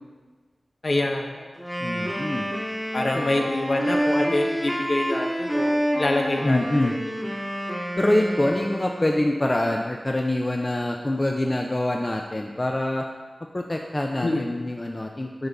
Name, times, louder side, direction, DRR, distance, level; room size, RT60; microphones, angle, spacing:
voice 1, 0.8-1.6 2.9-6.9 8.4-8.5 14.2-14.5, left 2 dB, 60° left, 2 dB, 0.9 m, -26 dB
Wind instrument woodwind instrument, 1.6-9.3, equal, 10° left, 1.3 m, -28 dB
voice 2, 1.8-2.5 3.1-3.3 6.4-7.0 8.0-13.0 13.5-15.5, left 1 dB, 30° left, 2 dB, 0.5 m, -25 dB
7.8 x 5.3 x 3.5 m, 1.4 s
cardioid pair, 45°, 0 cm